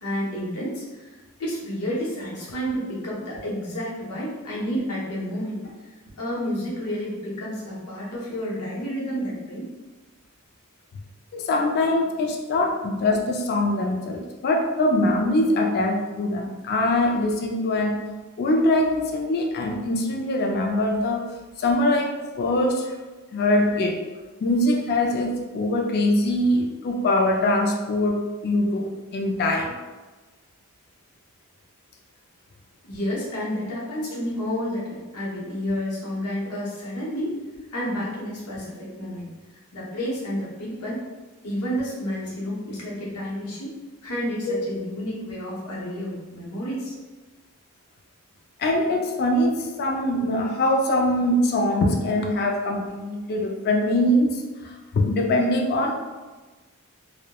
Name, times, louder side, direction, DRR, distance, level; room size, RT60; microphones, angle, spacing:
voice 1, 0.0-9.7 32.8-39.3 39.7-41.0 41.4-47.0, equal, 85° left, -6 dB, 0.7 m, -30 dB
voice 2, 11.3-18.0 18.4-21.2 21.6-22.1 22.4-22.9 23.3-24.0 24.4-29.8 44.5-44.6 48.6-56.0, left 1 dB, 45° left, 1 dB, 0.3 m, -23 dB
2.2 x 2.0 x 2.8 m, 1.2 s
head